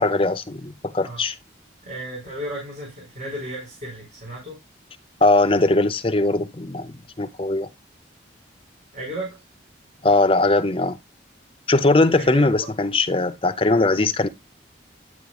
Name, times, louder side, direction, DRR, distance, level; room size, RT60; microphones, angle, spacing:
voice 1, 0.0-1.3 5.2-7.7 10.0-11.0 11.7-14.3, left 2 dB, 30° left, 0.7 m, -20 dB
voice 2, 1.8-4.6 8.9-9.4 12.2-12.7, equal, 40° right, 4.8 m, -34 dB
9.8 x 8.2 x 2.4 m
head